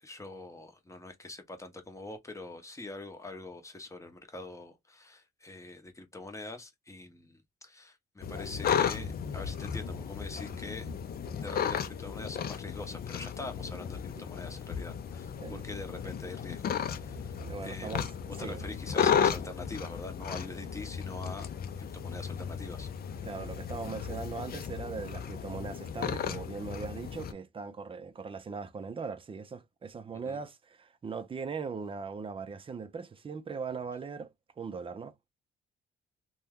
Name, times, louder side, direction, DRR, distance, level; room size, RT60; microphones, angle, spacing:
voice 1, 0.0-10.9 11.4-18.1 18.4-21.5 21.8-23.2 30.2-30.4, left 2 dB, 15° left, 0.8 m, -44 dB
sound 1, 8.2-27.3, left 7 dB, 50° left, 0.5 m, -34 dB
voice 2, 17.4-18.1 18.4-18.6 23.2-35.3, right 5 dB, 25° right, 0.5 m, -40 dB
2.8 x 2.2 x 3.5 m
cardioid pair, 90°, 20 cm